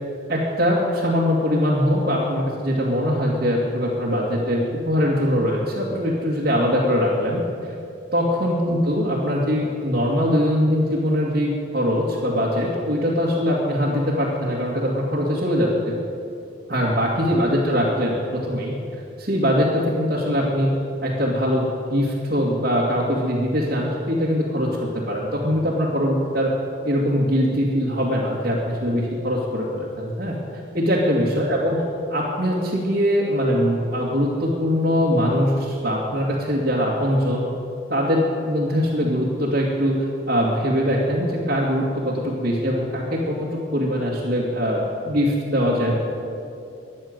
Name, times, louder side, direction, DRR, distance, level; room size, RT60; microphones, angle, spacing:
voice 1, 0.3-7.4 8.1-16.0 16.7-18.7 19.2-20.7 21.0-26.5 26.8-30.4 30.7-31.8 32.1-37.5 37.9-40.0 40.3-45.9, equal, 50° right, -7 dB, 2.3 m, -22 dB
14.5 x 11.0 x 8.0 m, 2.5 s
head